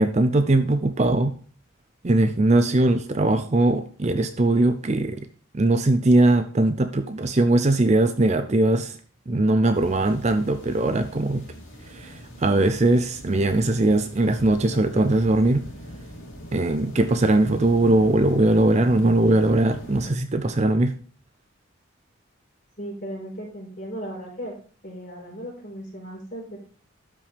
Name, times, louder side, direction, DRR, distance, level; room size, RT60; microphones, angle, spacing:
voice 1, 0.0-1.3 2.0-5.3 5.5-9.0 9.3-11.4 11.8-15.7 16.5-20.9, right 2 dB, 30° right, 9 dB, 0.5 m, -20 dB
sound 1, 9.7-20.1, equal, 60° left, 3.1 m, -41 dB
voice 2, 22.8-24.6 24.8-26.6, equal, 35° left, -2 dB, 4.4 m, -36 dB
12.5 x 5.5 x 3.4 m, 0.42 s
head